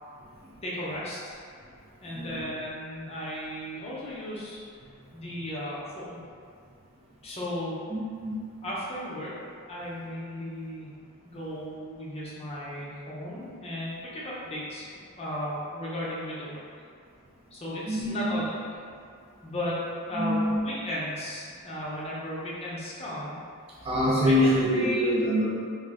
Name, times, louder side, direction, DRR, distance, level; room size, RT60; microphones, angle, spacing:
voice 1, 0.6-1.4 2.0-4.6 5.1-6.2 7.2-7.8 8.6-9.3 9.7-10.9 11.2-14.9 15.2-16.6 17.5-18.8 19.4-23.3 24.2-25.2, left 1 dB, 30° left, -7 dB, 0.6 m, -35 dB
voice 2, 2.1-2.5 7.9-8.3 17.9-18.3 20.1-20.6 23.8-25.5, equal, 25° right, -5 dB, 0.3 m, -25 dB
2.4 x 2.1 x 3.5 m, 2.2 s
head